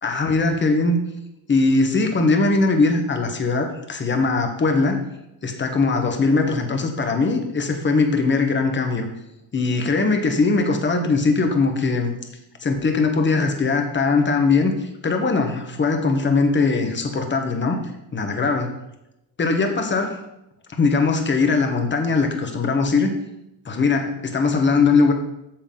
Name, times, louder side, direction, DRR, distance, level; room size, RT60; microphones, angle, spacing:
voice 1, 0.0-1.0 1.5-5.0 5.4-9.1 9.5-12.1 12.6-17.8 18.1-18.7 19.4-20.2 20.8-23.1 23.6-25.1, left 3 dB, 25° left, 4 dB, 1.4 m, -20 dB
8.9 x 7.0 x 4.0 m, 0.86 s
cardioid pair, 105°, 42 cm